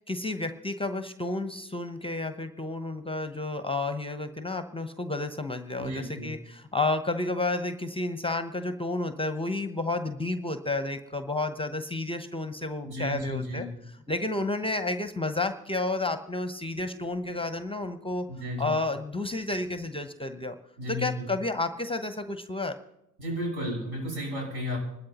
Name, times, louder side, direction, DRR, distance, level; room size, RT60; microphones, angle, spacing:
voice 1, 0.0-13.7 14.1-18.3 18.6-20.6 20.9-22.8, left 2 dB, 15° left, 9 dB, 0.9 m, -31 dB
voice 2, 5.8-6.3 12.8-13.7 18.3-18.8 20.8-21.3 23.2-24.8, left 1 dB, 60° right, -1 dB, 5.5 m, -33 dB
26.0 x 12.5 x 3.0 m, 0.84 s
hypercardioid pair, 50°, 41 cm